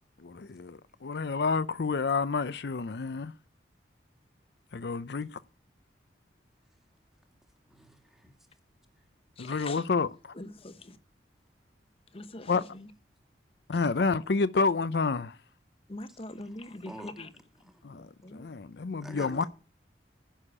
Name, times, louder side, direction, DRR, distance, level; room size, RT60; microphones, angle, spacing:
voice 1, 0.2-3.3 4.7-5.4 9.4-10.1 12.5-12.6 13.7-15.4 17.8-19.4, left 4 dB, 60° left, 0.5 m, -29 dB
voice 2, 7.7-8.3 16.9-17.1 19.0-19.5, equal, ahead, 1.5 m, -45 dB
voice 3, 9.4-9.8 10.3-11.0 12.1-12.9 15.9-17.3 17.9-18.5, left 2 dB, 30° left, 0.9 m, -43 dB
10.0 x 6.4 x 8.6 m
head